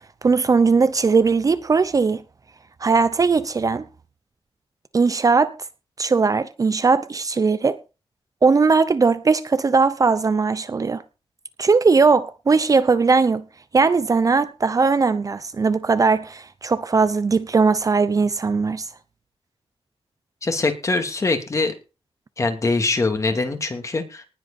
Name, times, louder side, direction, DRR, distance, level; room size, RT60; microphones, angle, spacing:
voice 1, 0.2-2.2 2.8-3.8 4.9-5.5 6.0-7.8 8.4-11.0 11.6-13.4 13.7-18.9, right 4 dB, 35° right, 0.9 m, -19 dB
voice 2, 20.4-21.7 22.4-24.2, left 3 dB, 30° left, 2.7 m, -23 dB
19.5 x 8.1 x 4.3 m
wide cardioid pair, 175°, 11 cm